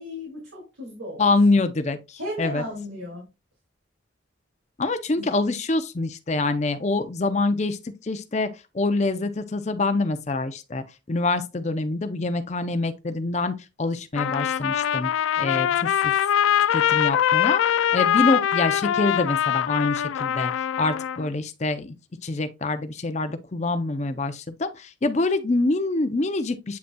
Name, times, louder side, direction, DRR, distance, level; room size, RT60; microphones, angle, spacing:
voice 1, 0.0-1.2 2.2-3.3 5.2-5.3 15.4-15.8, left 1 dB, 75° right, 2.5 m, -35 dB
voice 2, 1.2-2.6 4.8-7.8 8.0-8.5 8.7-15.1 15.4-16.1 16.7-20.5 20.8-21.9 22.2-26.8, left 3 dB, 35° left, 0.5 m, -25 dB
Trumpet, 14.1-21.3, left 10 dB, 90° left, 0.3 m, -23 dB
8.0 x 5.1 x 2.3 m
head